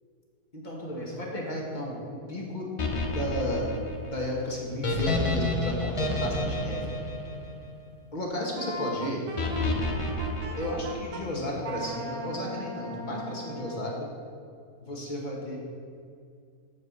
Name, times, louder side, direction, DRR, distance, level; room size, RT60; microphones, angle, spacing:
voice 1, 0.5-2.7 3.1-3.7 4.0-6.9 8.1-9.2 10.6-14.1 14.8-15.6, equal, 30° left, -2 dB, 1.5 m, -33 dB
sound 1, 2.8-8.1 9.4-11.3, left 2 dB, 60° left, 0.3 m, -30 dB
Wind instrument woodwind instrument, 8.6-11.2 11.6-14.0, right 1 dB, 65° right, 1.2 m, -39 dB
7.3 x 4.6 x 7.0 m, 2.4 s
omnidirectional pair, 1.6 m